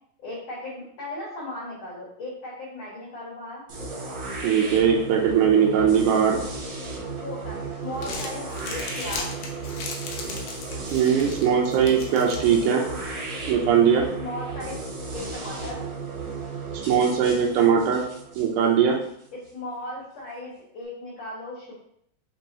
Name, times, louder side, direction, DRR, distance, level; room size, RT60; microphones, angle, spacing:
voice 1, 0.2-3.6 7.2-9.4 14.2-14.8 15.1-15.8 19.3-21.7, left 1 dB, 55° left, -10 dB, 2.1 m, -36 dB
sound 1, 3.7-19.5, right 3 dB, 65° right, 1.3 m, -35 dB
voice 2, 4.4-6.4 10.9-12.8 13.5-14.0 16.9-18.0 18.4-19.0, right 7 dB, 80° right, -1 dB, 1.8 m, -20 dB
Crumpling crinkling, 7.8-13.1, left 4 dB, 75° left, 2.2 m, -38 dB
5.7 x 3.0 x 2.9 m, 0.68 s
omnidirectional pair, 4.1 m